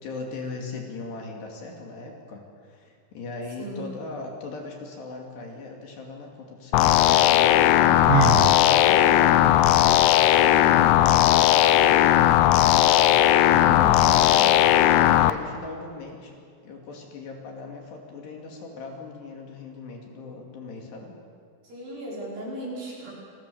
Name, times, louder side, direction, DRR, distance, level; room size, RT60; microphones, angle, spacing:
voice 1, 0.0-2.4 2.7-7.6 13.5-14.5 15.2-16.3 16.6-21.1, left 3 dB, 65° left, 1 dB, 4.5 m, -38 dB
sound 1, 6.7-15.3, left 13 dB, 85° left, 2.3 m, -17 dB
voice 2, 7.5-9.0 13.6-14.4 21.6-23.1, right 1 dB, 50° right, -4 dB, 6.7 m, -38 dB
Sigh, 8.1-8.6, right 11 dB, 80° right, 3.2 m, -22 dB
29.0 x 20.0 x 7.0 m, 2.2 s
omnidirectional pair, 5.5 m